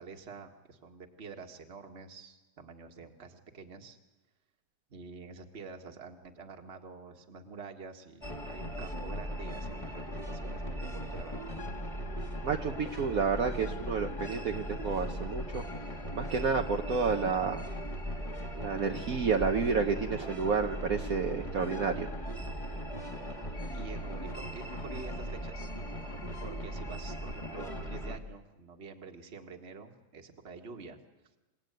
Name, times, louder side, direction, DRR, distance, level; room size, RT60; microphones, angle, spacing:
voice 1, 0.0-4.0 4.9-11.4 23.7-25.7 26.0-26.1 26.4-31.0, right 4 dB, 40° right, 4 dB, 1.9 m, -47 dB
sound 1, 8.2-28.2, equal, 20° left, 1.8 m, -38 dB
voice 2, 12.4-15.6 16.1-17.6 18.6-22.1, right 5 dB, 60° right, 3 dB, 1.4 m, -30 dB
28.5 x 17.5 x 9.3 m, 1.1 s
omnidirectional pair, 1.8 m